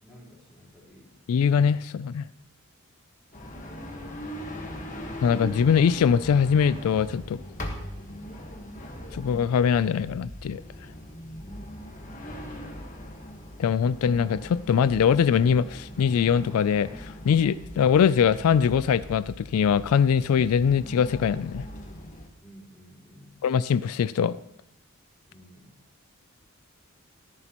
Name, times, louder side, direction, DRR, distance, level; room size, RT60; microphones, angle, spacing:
voice 1, 0.0-1.1 11.3-11.7 22.4-23.5 25.3-25.8, equal, ahead, -7 dB, 4.0 m, -52 dB
voice 2, 1.3-2.3 5.2-7.4 9.1-10.6 13.6-21.6 23.4-24.4, left 7 dB, 85° left, 17 dB, 0.3 m, -22 dB
sound 1, 3.3-22.3, equal, 35° left, 1.3 m, -40 dB
13.5 x 11.0 x 3.0 m, 0.79 s
head